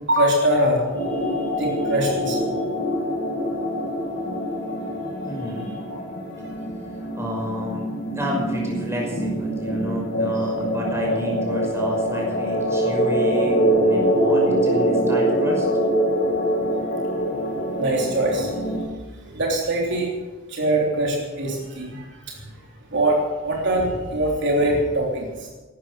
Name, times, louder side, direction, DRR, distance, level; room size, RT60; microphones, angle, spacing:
voice 1, 0.1-0.9 1.6-2.5 5.9-6.0 17.8-18.5 19.3-20.1 20.5-22.4 22.9-25.5, right 1 dB, 60° right, -1 dB, 3.3 m, -23 dB
sound 1, 0.9-18.8, equal, 50° left, 5.3 m, -24 dB
voice 2, 5.3-5.8 7.1-7.9 8.1-15.7, equal, 15° right, -1 dB, 5.6 m, -30 dB
17.0 x 12.5 x 6.8 m, 1.2 s
head